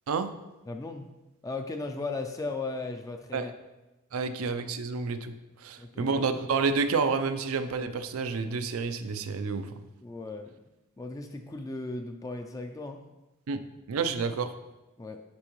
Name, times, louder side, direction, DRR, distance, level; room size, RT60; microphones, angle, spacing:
voice 1, 0.7-1.1 1.4-3.5 5.8-6.2 10.0-10.5 11.0-13.0 15.0-15.2, left 3 dB, 15° left, 5 dB, 0.3 m, -36 dB
voice 2, 4.1-5.3 5.6-9.7 13.5-13.6 13.9-14.5, right 4 dB, 85° right, 9 dB, 0.5 m, -29 dB
8.6 x 4.4 x 3.0 m, 1.0 s
head